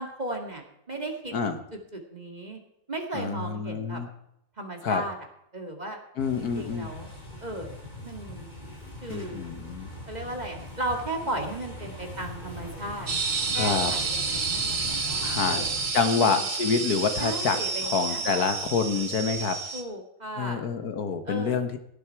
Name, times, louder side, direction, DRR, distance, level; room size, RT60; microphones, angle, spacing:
voice 1, 0.0-1.6 1.9-2.6 2.9-4.0 4.6-5.2 5.5-6.0 6.4-7.1 7.4-7.7 8.0-8.5 9.0-9.4 10.1-13.1 13.5-15.7 16.1-16.5 17.2-18.5 19.7-20.6 21.3-21.6, right 1 dB, 25° right, 3 dB, 2.1 m, -35 dB
voice 2, 3.1-4.1 4.8-5.0 6.2-6.9 9.1-9.9 13.6-13.9 15.2-15.6 15.9-17.6 17.8-19.6 20.4-21.8, left 5 dB, 70° left, 8 dB, 1.6 m, -27 dB
sound 1, 6.2-15.9, left 1 dB, 25° left, 4.0 m, -41 dB
sound 2, 13.1-19.8, right 4 dB, 55° right, 1.8 m, -30 dB
17.0 x 11.0 x 4.6 m, 0.79 s
omnidirectional pair, 1.7 m